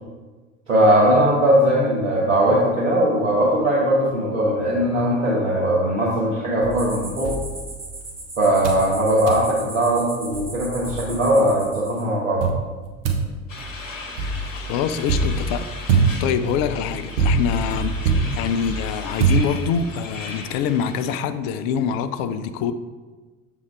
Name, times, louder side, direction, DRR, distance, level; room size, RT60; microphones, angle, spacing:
voice 1, 0.7-7.3 8.4-12.4, right 1 dB, 80° right, 1.3 m, -19 dB
sound 1, 6.6-8.2 8.6-8.9 9.3-9.5 10.0-10.1 10.3-11.4 12.4-20.0, right 4 dB, 65° right, 1.1 m, -24 dB
sound 2, 6.7-12.0, right 2 dB, 15° right, 1.4 m, -38 dB
sound 3, 13.5-21.2, left 3 dB, 85° left, 0.9 m, -37 dB
voice 2, 14.2-22.7, left 7 dB, 45° left, 0.5 m, -25 dB
7.1 x 3.8 x 4.5 m
figure-of-eight pair, 75°, 38 cm